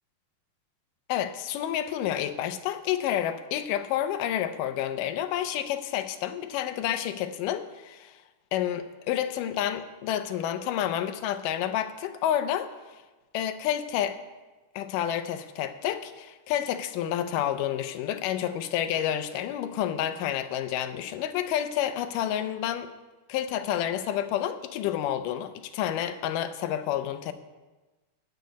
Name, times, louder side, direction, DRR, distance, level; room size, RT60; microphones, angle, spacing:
voice 1, 1.1-8.2 8.5-12.7 13.3-14.2 14.8-22.9 23.3-27.3, left 11 dB, 80° left, 9 dB, 2.3 m, -29 dB
14.5 x 5.3 x 9.3 m, 1.2 s
omnidirectional pair, 3.8 m